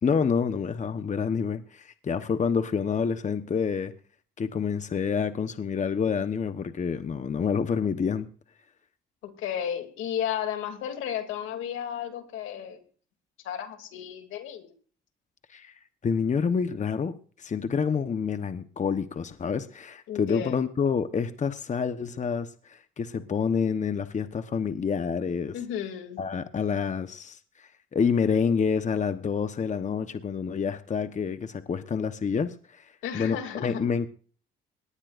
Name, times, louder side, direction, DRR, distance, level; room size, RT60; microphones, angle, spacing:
voice 1, 0.0-3.9 4.4-8.3 15.5-25.6 26.2-34.1, left 6 dB, 35° left, 1.1 m, -28 dB
voice 2, 9.2-12.8 13.4-14.7 20.1-20.6 25.5-26.2 33.0-33.8, left 9 dB, 85° left, 2.8 m, -33 dB
20.5 x 18.5 x 2.6 m
cardioid pair, 90°, 20 cm